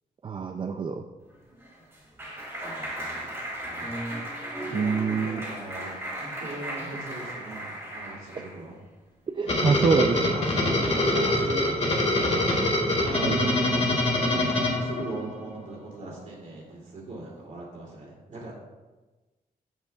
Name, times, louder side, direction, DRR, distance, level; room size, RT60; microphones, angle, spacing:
voice 1, 0.2-1.0 4.7-5.4 9.3-10.2 13.2-13.5, right 5 dB, 35° right, 5 dB, 0.4 m, -25 dB
Clapping, 1.3-8.6, right 1 dB, 15° right, 2.6 m, -36 dB
voice 2, 2.6-3.4 4.6-8.8 9.7-12.5 13.0-18.6, right 2 dB, 55° right, -4 dB, 2.7 m, -40 dB
sound 1, 9.5-15.5, left 1 dB, 45° left, 1.8 m, -24 dB
15.0 x 5.5 x 2.3 m, 1.2 s
wide cardioid pair, 165°, 16 cm